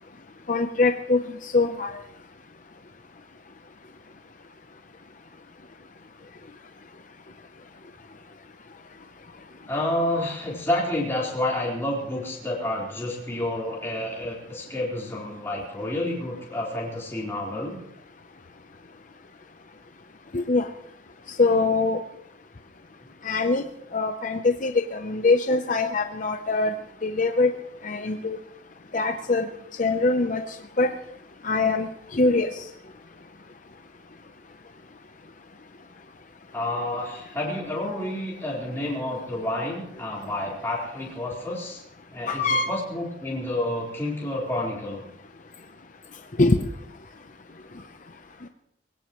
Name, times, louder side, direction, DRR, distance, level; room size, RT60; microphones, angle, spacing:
voice 1, 0.5-2.0 20.3-20.7 21.4-22.0 23.2-23.6 23.9-26.8 27.0-27.5 27.8-28.4 28.9-29.5 29.8-30.9 31.4-32.6 42.3-42.7 46.4-46.6, left 3 dB, 40° left, 6 dB, 0.7 m, -23 dB
voice 2, 9.7-17.8 36.5-41.8 42.1-45.0, left 1 dB, 15° left, -5 dB, 4.0 m, -29 dB
21.5 x 17.0 x 3.1 m, 0.79 s
head